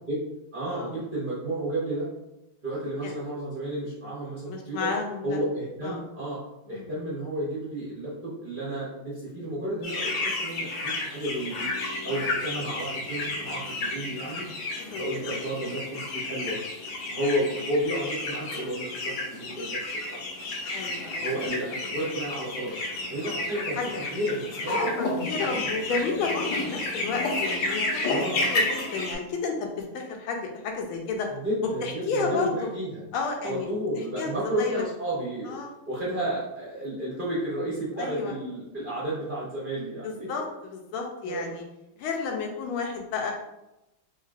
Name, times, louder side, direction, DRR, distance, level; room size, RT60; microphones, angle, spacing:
voice 1, 0.5-2.1 2.6-4.9 5.2-6.4 6.7-11.7 12.0-14.4 15.0-16.6 17.1-19.8 20.1-20.2 21.0-22.7 23.1-23.8 24.1-24.8 25.4-25.7 28.1-28.5 31.4-33.0 33.4-35.6 35.9-40.3 41.2-41.6, right 1 dB, 55° right, -7 dB, 0.5 m, -32 dB
voice 2, 4.5-5.4 5.8-6.0 6.7-6.9 14.8-15.0 20.7-21.3 23.8-23.9 24.8-31.3 31.8-32.7 33.1-33.7 34.2-34.8 35.4-35.7 38.0-38.3 40.0-41.6 42.0-43.3, left 4 dB, 90° left, 2 dB, 1.5 m, -31 dB
sound 1, 9.8-29.2, left 2 dB, 70° left, 1.3 m, -31 dB
3.7 x 3.1 x 2.4 m, 0.92 s
omnidirectional pair, 2.2 m